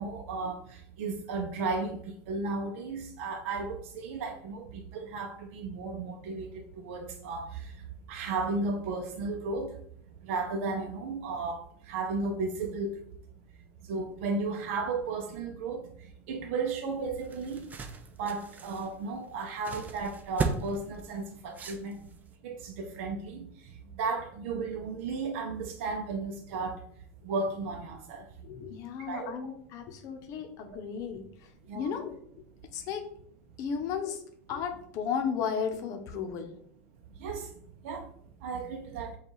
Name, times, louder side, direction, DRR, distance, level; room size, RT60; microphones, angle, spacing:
voice 1, 0.0-7.7 8.1-9.7 10.2-11.6 11.9-13.0 13.9-15.8 16.3-17.6 18.2-22.0 22.4-23.5 24.0-26.8 27.2-28.2 29.1-29.3 31.7-32.0 37.2-37.5 37.8-38.0 38.4-39.1, right 3 dB, 75° right, 3 dB, 0.5 m, -34 dB
sound 1, 16.9-22.3, right 4 dB, 25° right, 0.5 m, -37 dB
voice 2, 28.4-31.3 31.7-32.2 32.7-33.1 33.6-34.2 34.5-36.5, left 7 dB, 55° left, 6 dB, 0.7 m, -34 dB
5.3 x 2.4 x 3.0 m, 0.64 s
supercardioid pair, 120°, 7 cm